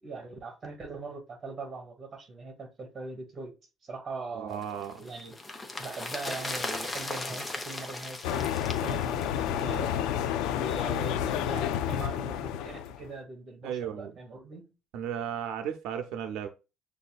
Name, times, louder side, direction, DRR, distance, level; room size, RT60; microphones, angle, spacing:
voice 1, 0.0-3.5 3.8-5.4 5.8-8.5 8.8-9.9 10.5-14.7, right 3 dB, 30° right, 1.3 m, -41 dB
voice 2, 4.3-5.0 13.6-14.1 14.9-16.5, right 9 dB, 85° right, 0.6 m, -35 dB
sound 1, 4.6-10.0 10.3-10.4, left 2 dB, 15° left, 0.6 m, -38 dB
sound 2, 8.2-13.1, left 10 dB, 90° left, 0.3 m, -30 dB
6.7 x 2.6 x 2.3 m
cardioid pair, 150°, 0 cm